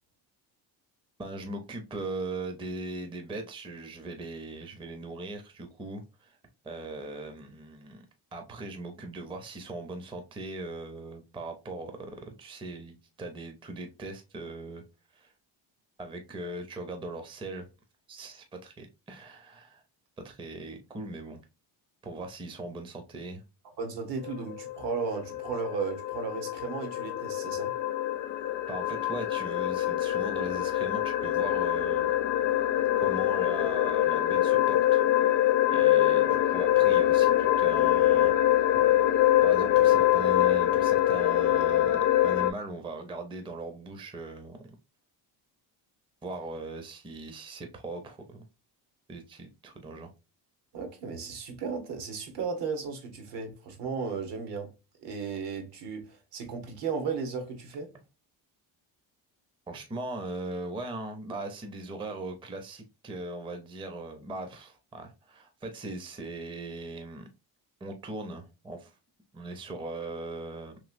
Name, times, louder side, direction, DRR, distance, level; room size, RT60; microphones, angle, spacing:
voice 1, 1.2-6.4 6.6-8.1 8.3-14.8 15.1-15.3 16.0-17.7 18.1-19.8 20.2-21.4 22.0-23.4 28.7-32.2 33.0-35.0 35.7-38.3 38.7-38.9 39.4-44.7 46.2-48.5 49.1-50.1 59.7-67.3 67.8-68.9 69.3-70.8, right 2 dB, 10° right, 0.5 m, -39 dB
voice 2, 23.8-27.7 50.7-54.7 55.0-57.9, right 5 dB, 70° right, 1.1 m, -35 dB
sound 1, 24.2-42.5, left 13 dB, 45° left, 0.5 m, -24 dB
3.1 x 2.9 x 2.5 m
cardioid pair, 110°, 43 cm